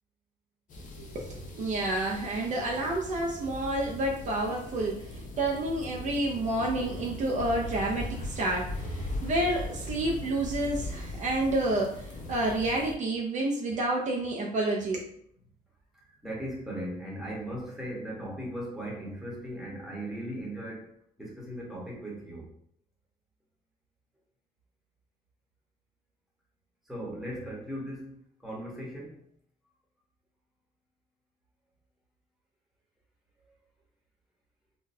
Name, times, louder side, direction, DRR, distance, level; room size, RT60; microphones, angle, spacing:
sound 1, 0.7-12.9, left 1 dB, 50° left, 0.7 m, -39 dB
voice 1, 1.1-15.1, right 1 dB, 45° right, -1 dB, 0.5 m, -29 dB
voice 2, 15.9-22.5 26.8-29.2, equal, ahead, -4 dB, 1.2 m, -38 dB
3.8 x 2.2 x 2.7 m, 0.69 s
cardioid pair, 110°, 17 cm